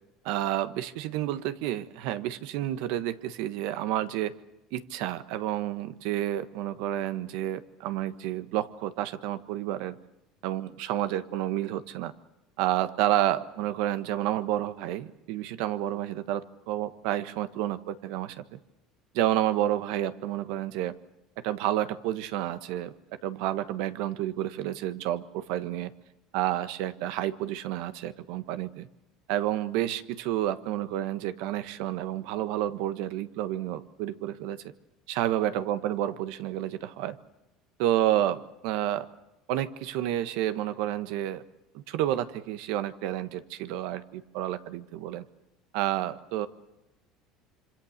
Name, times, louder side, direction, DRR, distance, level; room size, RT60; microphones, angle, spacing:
voice 1, 0.2-4.4 4.7-10.0 10.4-12.1 12.6-18.6 19.1-20.9 21.4-22.9 23.2-25.9 26.3-28.9 29.3-34.6 35.1-37.2 37.8-39.1 39.5-41.4 41.7-45.2 45.7-46.5, right 13 dB, 75° right, 12 dB, 1.4 m, -30 dB
26.5 x 26.0 x 6.7 m, 0.94 s
supercardioid pair, 110°, 0 cm